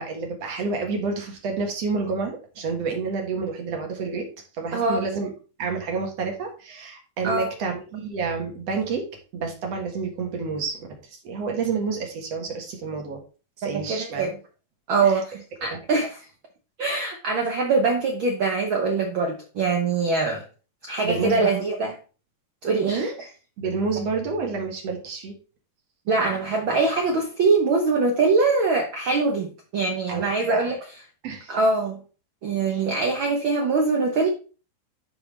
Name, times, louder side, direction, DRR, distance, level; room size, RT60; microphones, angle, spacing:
voice 1, 0.0-4.3 4.6-5.3 5.6-9.1 9.3-10.9 11.2-13.2 13.6-14.3 15.0-15.2 15.7-15.8 21.0-21.5 22.9-23.1 23.6-25.4 30.1-30.7 31.2-31.5 32.7-32.8, right 4 dB, 55° right, 2 dB, 2.5 m, -29 dB
voice 2, 4.7-5.0 7.2-7.5 13.7-14.4 14.9-16.2 16.8-20.4 20.8-22.0 22.6-23.3 26.1-31.0 31.5-32.0 32.4-34.3, right 3 dB, 80° right, 2 dB, 1.1 m, -23 dB
11.0 x 4.7 x 3.3 m, 0.35 s
omnidirectional pair, 3.9 m